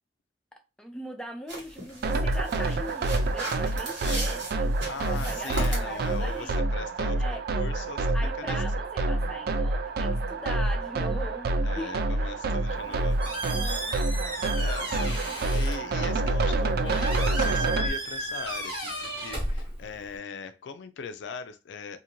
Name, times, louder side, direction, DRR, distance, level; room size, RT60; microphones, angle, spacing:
voice 1, 0.5-6.5 7.2-7.4 8.1-11.9 12.8-13.0 13.5-14.0 15.0-15.5, equal, 5° left, 0.4 m, -41 dB
sound 1, 1.5-6.5, right 1 dB, 75° right, 1.2 m, -38 dB
sound 2, 2.0-17.9, right 2 dB, 60° right, 0.3 m, -27 dB
voice 2, 3.9-4.3 4.9-8.6 9.0-9.3 11.6-13.4 14.6-22.0, left 5 dB, 85° left, 0.4 m, -40 dB
Squeak, 12.7-20.2, right 1 dB, 30° right, 0.9 m, -34 dB
2.5 x 2.5 x 2.9 m
head